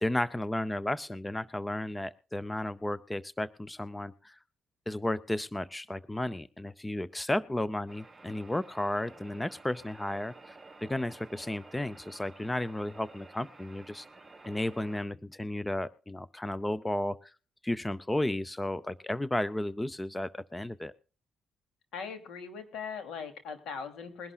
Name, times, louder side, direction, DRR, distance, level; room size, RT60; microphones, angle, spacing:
voice 1, 0.0-4.4 4.9-14.1 14.4-17.3 17.6-20.9, left 1 dB, 10° left, 16 dB, 0.5 m, -33 dB
sound 1, 7.9-15.0, right 3 dB, 15° right, 4.1 m, -52 dB
voice 2, 21.9-24.3, left 6 dB, 80° left, 7 dB, 2.8 m, -40 dB
21.5 x 11.0 x 2.4 m, 0.35 s
cardioid pair, 90°, 0 cm